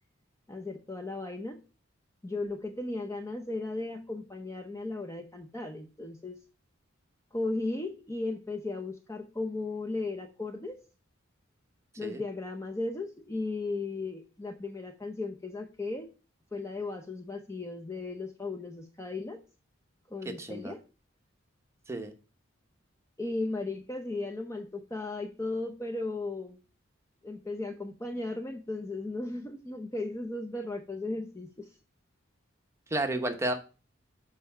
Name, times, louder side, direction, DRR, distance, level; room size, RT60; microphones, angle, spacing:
voice 1, 0.5-1.6 2.2-6.4 7.3-10.8 12.0-16.1 16.5-19.4 20.1-20.8 23.2-26.6 27.2-31.7, left 2 dB, 15° left, 4 dB, 0.6 m, -36 dB
voice 2, 20.2-20.7 21.9-22.1 32.9-33.5, right 1 dB, 15° right, 5 dB, 1.0 m, -31 dB
6.8 x 4.7 x 5.5 m, 0.33 s
head